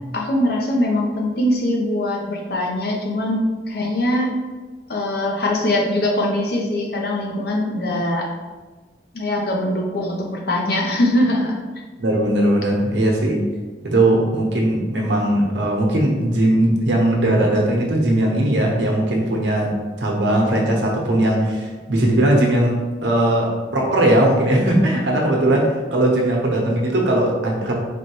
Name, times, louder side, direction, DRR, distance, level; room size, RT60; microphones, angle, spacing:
voice 1, 0.1-4.3 4.9-8.3 9.1-11.6, left 1 dB, 60° left, 0 dB, 0.7 m, -22 dB
voice 2, 12.0-13.4 13.8-27.7, right 1 dB, 85° right, -1 dB, 0.9 m, -19 dB
4.3 x 3.1 x 3.0 m, 1.3 s
head